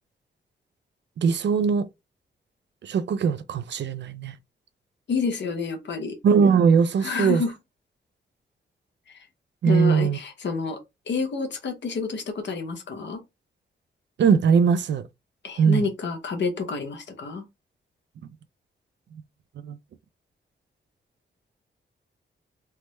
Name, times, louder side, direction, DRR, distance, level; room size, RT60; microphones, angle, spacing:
voice 1, 1.2-1.9 2.8-4.3 6.2-7.4 9.6-10.2 14.2-15.1 15.6-15.8 19.6-19.8, right 6 dB, 70° right, 0.5 m, -20 dB
voice 2, 5.1-6.2 7.0-7.5 9.1-9.3 9.6-10.8 11.1-13.2 15.4-17.4, left 4 dB, 70° left, 1.0 m, -29 dB
3.4 x 2.1 x 3.0 m
cardioid pair, 65°, 19 cm